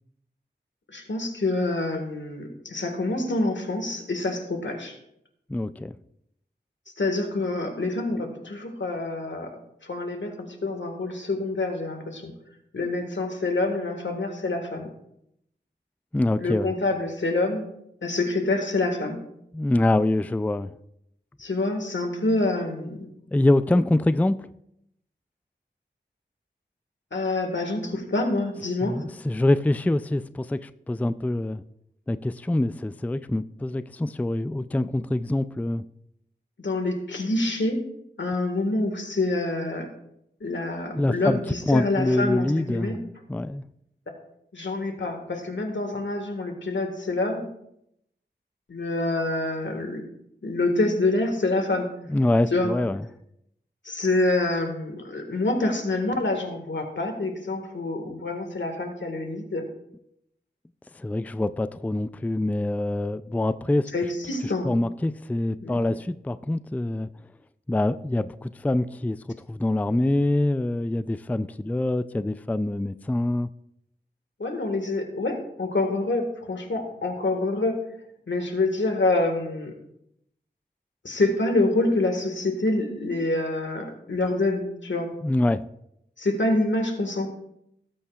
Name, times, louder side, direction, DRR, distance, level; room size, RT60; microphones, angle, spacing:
voice 1, 0.9-5.0 7.0-9.5 9.8-12.3 12.7-14.9 16.4-17.7 18.0-19.2 21.4-23.1 27.1-29.0 36.6-37.8 38.2-39.9 40.4-43.0 44.5-47.5 48.7-50.0 50.4-51.9 52.5-52.7 53.8-59.6 63.9-64.7 65.6-65.8 74.4-77.8 78.3-79.7 81.0-85.1 86.2-87.3, left 2 dB, 85° left, 4 dB, 1.7 m, -26 dB
voice 2, 5.5-6.0 16.1-16.7 19.5-20.7 23.3-24.4 28.8-31.6 32.1-35.8 40.9-41.4 41.7-43.0 43.3-43.6 52.1-53.0 61.0-63.9 64.6-67.1 67.7-69.2 69.5-73.5 85.2-85.6, left 1 dB, 10° left, 13 dB, 0.3 m, -25 dB
18.0 x 8.6 x 2.4 m, 0.78 s
wide cardioid pair, 65°, 19 cm